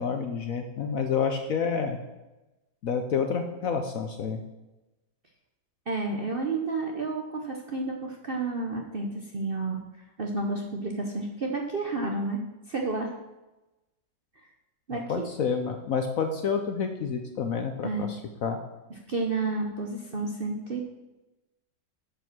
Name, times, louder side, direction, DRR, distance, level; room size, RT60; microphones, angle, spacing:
voice 1, 0.0-2.0 2.8-4.4 14.9-18.1 18.4-18.6, left 6 dB, 60° left, 6 dB, 1.0 m, -29 dB
voice 2, 5.9-9.8 10.2-12.4 12.7-13.1 14.9-15.3 17.8-18.1 19.1-20.9, right 3 dB, 45° right, 1 dB, 0.8 m, -31 dB
10.0 x 5.2 x 6.1 m, 1.0 s
omnidirectional pair, 2.0 m